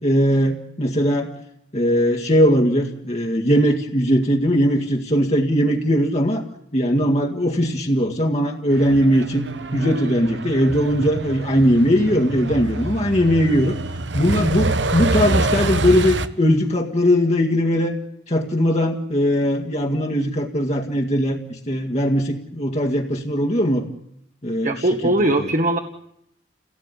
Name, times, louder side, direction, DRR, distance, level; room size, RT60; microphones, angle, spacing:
voice 1, 0.0-1.3 1.7-6.4 6.7-9.4 9.7-13.8 14.1-17.9 18.3-23.8 24.4-24.8 25.4-25.5, equal, 40° left, 1 dB, 2.0 m, -19 dB
Truck, 8.7-16.3, right 2 dB, 85° right, 1.3 m, -26 dB
voice 2, 24.6-25.8, right 1 dB, 45° right, 4 dB, 1.7 m, -20 dB
29.0 x 17.5 x 9.8 m, 0.78 s
head